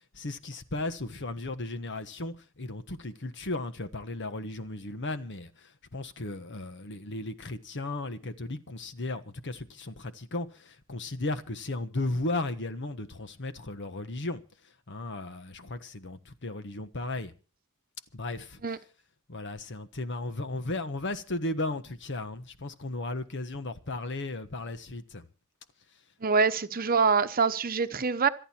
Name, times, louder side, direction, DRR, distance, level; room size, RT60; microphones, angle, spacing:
voice 1, 0.1-14.4 14.9-17.3 18.1-18.8 19.3-25.3, left 2 dB, 55° left, 1.3 m, -35 dB
voice 2, 26.2-28.3, right 5 dB, 40° right, 1.0 m, -25 dB
26.5 x 9.1 x 4.5 m
head